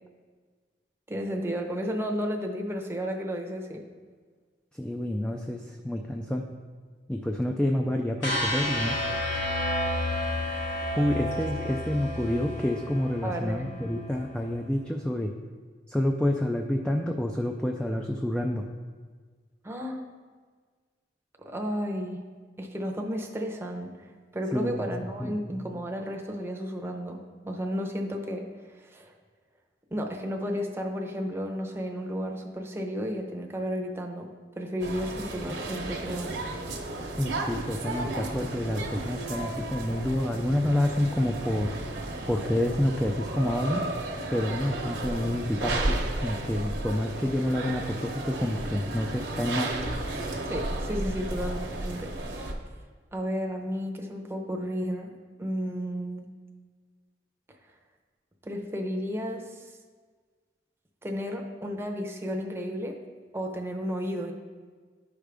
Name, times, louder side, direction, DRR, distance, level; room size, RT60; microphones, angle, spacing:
voice 1, 1.1-3.9 11.6-11.7 13.2-13.8 19.6-20.1 21.4-22.2 22.6-28.5 28.8-29.1 29.9-36.4 50.5-52.1 53.1-55.1 55.4-56.3 58.4-59.6 61.0-63.0 63.3-64.3, equal, 15° right, 2 dB, 0.7 m, -33 dB
voice 2, 4.7-6.4 7.1-9.1 11.0-15.3 15.9-18.7 24.5-24.9 25.2-25.4 37.2-41.7 42.3-43.9 44.3-49.8, left 1 dB, 5° left, 2 dB, 0.3 m, -28 dB
sound 1, 8.2-14.3, left 1 dB, 85° left, 2.4 m, -31 dB
sound 2, 34.8-52.5, right 2 dB, 65° right, 0.9 m, -33 dB
11.5 x 5.0 x 3.4 m, 1.5 s
head